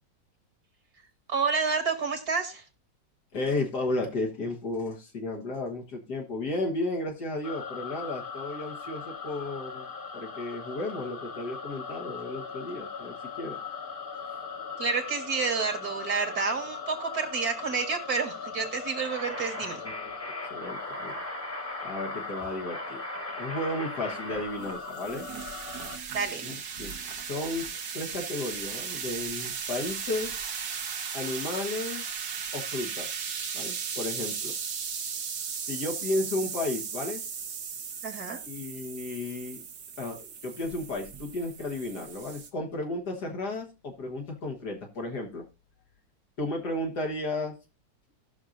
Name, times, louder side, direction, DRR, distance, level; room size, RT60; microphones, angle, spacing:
voice 1, 1.3-2.6 14.8-19.8 26.1-26.4 38.0-38.4, right 5 dB, 60° right, 4 dB, 2.2 m, -29 dB
voice 2, 3.3-9.9 10.1-13.6 19.5-20.1 20.5-21.1 21.8-23.0 23.3-25.3 26.4-26.9 27.2-27.7 27.9-30.4 31.1-32.0 32.5-33.1 33.5-34.5 35.7-37.2 38.5-39.6 40.0-45.4 46.4-47.6, left 2 dB, 65° left, 1 dB, 1.9 m, -33 dB
sound 1, 7.4-26.0, left 5 dB, 45° left, 0.8 m, -40 dB
sound 2, 19.0-24.9, equal, 10° left, 1.2 m, -39 dB
sound 3, 24.3-42.5, right 6 dB, 75° right, 1.9 m, -36 dB
18.5 x 6.2 x 2.5 m, 0.29 s
omnidirectional pair, 1.9 m